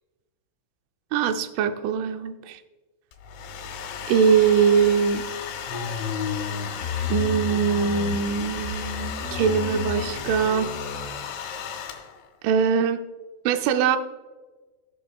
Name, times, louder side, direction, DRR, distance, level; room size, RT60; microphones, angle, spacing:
voice 1, 1.1-2.6 4.1-5.2 7.1-10.7 12.4-13.0 13.5-14.0, right 7 dB, 80° right, 7 dB, 3.0 m, -22 dB
Domestic sounds home sounds, 3.1-12.3, left 7 dB, 85° left, 3.8 m, -35 dB
sound 1, 5.7-11.1, left 6 dB, 70° left, 4.5 m, -31 dB
18.0 x 7.6 x 2.3 m, 1.2 s
omnidirectional pair, 5.6 m